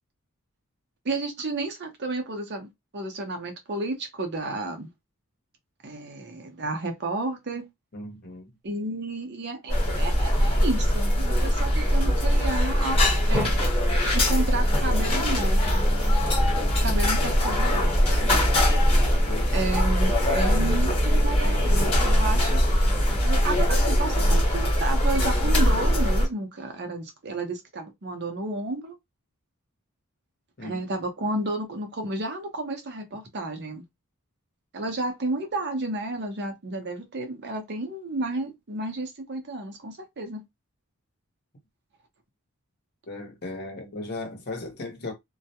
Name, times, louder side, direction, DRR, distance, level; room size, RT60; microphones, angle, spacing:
voice 1, 1.0-4.9 5.8-7.6 8.6-13.6 14.1-15.9 16.8-18.3 19.5-22.6 23.2-29.0 30.6-33.8 34.7-40.4, right 2 dB, 50° right, 0.7 m, -32 dB
voice 2, 7.9-8.5 16.8-17.0 19.3-19.7 30.6-30.8 43.1-45.1, left 2 dB, 45° left, 0.8 m, -37 dB
sound 1, 9.7-26.3, equal, 25° left, 1.1 m, -21 dB
2.2 x 2.1 x 2.8 m
head